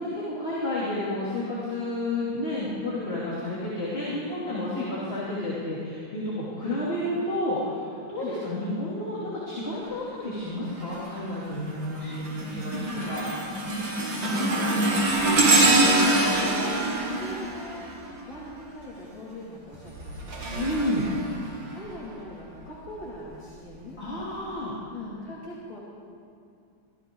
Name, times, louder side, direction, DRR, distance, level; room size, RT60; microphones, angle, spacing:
voice 1, 0.0-4.8 5.1-13.3 20.5-21.0 24.0-24.7, left 1 dB, 30° left, -8 dB, 3.2 m, -31 dB
sound 1, 10.8-11.2 11.7-18.5 19.7-21.9 22.6-22.8 23.7-23.8, right 2 dB, 70° right, 2.8 m, -25 dB
voice 2, 14.3-17.9 18.3-20.7 21.7-24.0 24.9-25.8, left 2 dB, 70° left, -7 dB, 3.4 m, -40 dB
24.5 x 15.0 x 3.9 m, 2.4 s
omnidirectional pair, 2.2 m